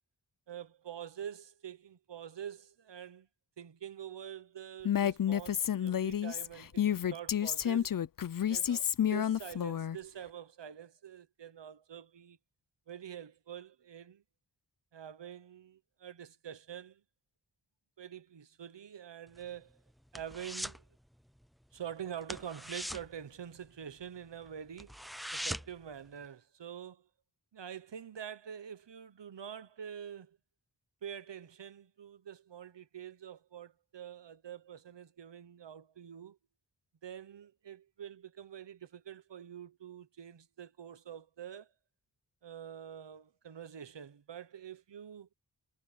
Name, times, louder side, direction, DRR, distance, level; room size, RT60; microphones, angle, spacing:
voice 1, 0.5-3.3 3.6-7.9 8.5-12.4 12.9-14.2 14.9-17.0 18.0-19.8 20.1-20.8 21.7-25.0 25.3-27.1 27.5-30.4 31.0-36.4 37.0-41.7 42.4-45.3, right 9 dB, 75° right, 1.0 m, -46 dB
Female speech woman speaking, 4.8-10.0, left 9 dB, 50° left, 0.5 m, -30 dB
sound 1, 19.3-20.9 21.1-21.4 21.7-21.9 22.2-24.1 24.4-24.5 24.8-25.9 26.2-26.3, equal, ahead, 0.4 m, -41 dB
wide cardioid pair, 90°, 43 cm